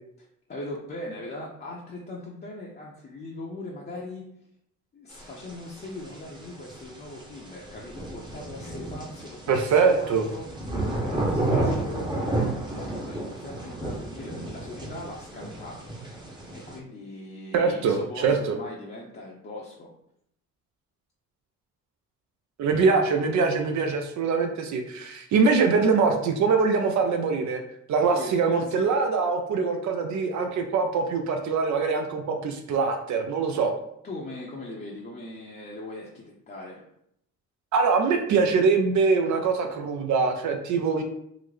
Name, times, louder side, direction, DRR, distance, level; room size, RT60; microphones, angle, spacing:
voice 1, 0.2-4.3 4.9-10.5 10.8-15.9 16.5-19.9 28.1-28.9 33.5-36.9, left 2 dB, 35° left, -4 dB, 0.6 m, -40 dB
sound 1, 5.1-16.8, right 2 dB, 15° right, 0.8 m, -32 dB
voice 2, 9.5-10.3 17.5-18.6 22.6-27.6 27.9-33.7 37.7-41.0, right 4 dB, 70° right, 4 dB, 0.5 m, -23 dB
3.8 x 2.1 x 3.2 m, 0.74 s
cardioid pair, 90°, 30 cm